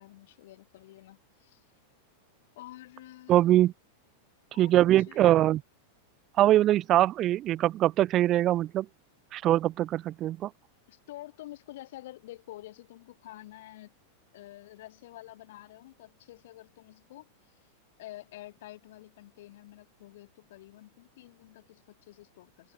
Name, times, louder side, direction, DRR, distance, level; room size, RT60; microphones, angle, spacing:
voice 1, 0.0-1.6 2.5-3.6 4.5-5.2 10.9-13.9 14.3-17.5 18.0-22.7, left 16 dB, 55° left, 1.8 m, -49 dB
voice 2, 3.3-3.7 4.6-5.6 6.4-8.9 9.3-10.5, right 13 dB, 35° right, 0.5 m, -23 dB
figure-of-eight pair, 90°, 0 cm